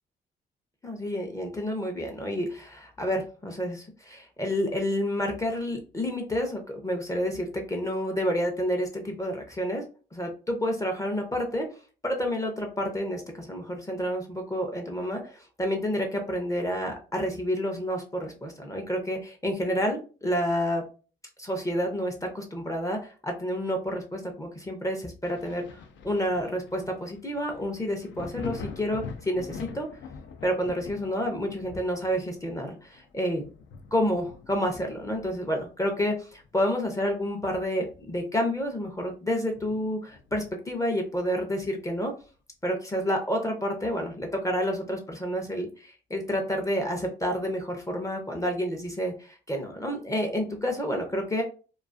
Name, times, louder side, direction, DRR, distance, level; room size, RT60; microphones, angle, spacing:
voice 1, 0.8-9.8 10.1-11.7 12.0-20.8 21.4-29.9 30.4-33.4 33.9-42.1 42.6-51.4, equal, 15° left, 3 dB, 0.5 m, -29 dB
Thunder, 25.2-36.6 37.0-38.5 38.8-38.9 39.5-40.8 42.2-42.3, left 5 dB, 70° left, 0.4 m, -45 dB
2.3 x 2.3 x 2.5 m, 0.37 s
cardioid pair, 90°, 20 cm